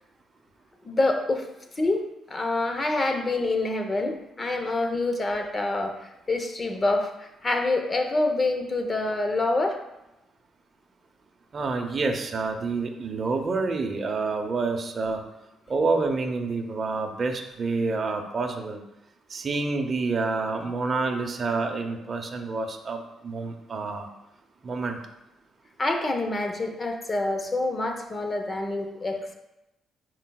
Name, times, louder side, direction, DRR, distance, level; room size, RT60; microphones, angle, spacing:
voice 1, 0.8-1.5 1.8-9.8 25.8-29.2, left 2 dB, 25° left, 5 dB, 0.8 m, -26 dB
voice 2, 11.5-15.2 15.7-18.8 19.3-24.1 24.6-25.0, right 3 dB, 35° right, 3 dB, 0.8 m, -28 dB
10.0 x 4.7 x 2.3 m, 0.92 s
cardioid pair, 140°, 0 cm